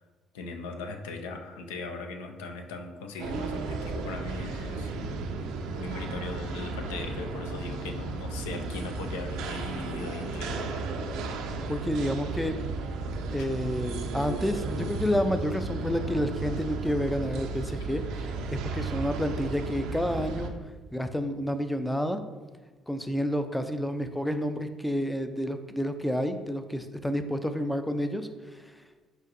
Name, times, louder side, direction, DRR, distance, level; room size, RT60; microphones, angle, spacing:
voice 1, 0.3-4.9 5.7-10.8, left 3 dB, 85° left, 4 dB, 0.4 m, -39 dB
sound 1, 3.2-20.5, right 3 dB, 75° right, 0.4 m, -34 dB
voice 2, 11.7-12.5 13.3-20.5 20.9-22.2 22.9-28.6, equal, 5° left, 8 dB, 0.4 m, -30 dB
4.3 x 4.0 x 2.5 m, 1.3 s
hypercardioid pair, 60°, 0 cm